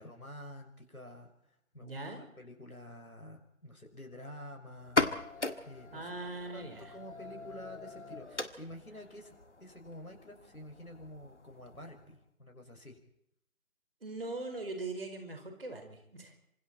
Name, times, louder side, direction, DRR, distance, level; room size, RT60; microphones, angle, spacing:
voice 1, 0.0-5.0 5.6-6.1 6.5-9.3 9.6-13.0, left 1 dB, 85° left, 4 dB, 6.2 m, -49 dB
voice 2, 1.8-2.2 5.9-6.9 14.0-16.3, right 2 dB, 40° right, 5 dB, 5.0 m, -41 dB
sound 1, 4.8-12.2, left 3 dB, 55° left, 1.9 m, -39 dB
27.0 x 26.0 x 4.4 m, 0.73 s
figure-of-eight pair, 165°, 42 cm